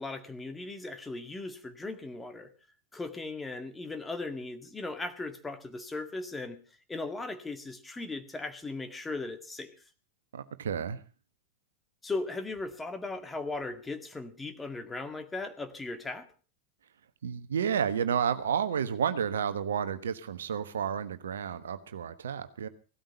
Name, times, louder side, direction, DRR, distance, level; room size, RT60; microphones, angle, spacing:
voice 1, 0.0-2.5 2.9-6.6 6.9-9.7 12.0-16.3, left 3 dB, 15° left, 8 dB, 2.0 m, -37 dB
voice 2, 10.3-11.0 17.2-22.7, right 7 dB, 75° right, 11 dB, 1.2 m, -31 dB
17.0 x 13.0 x 5.4 m, 0.36 s
figure-of-eight pair, 90°, 0 cm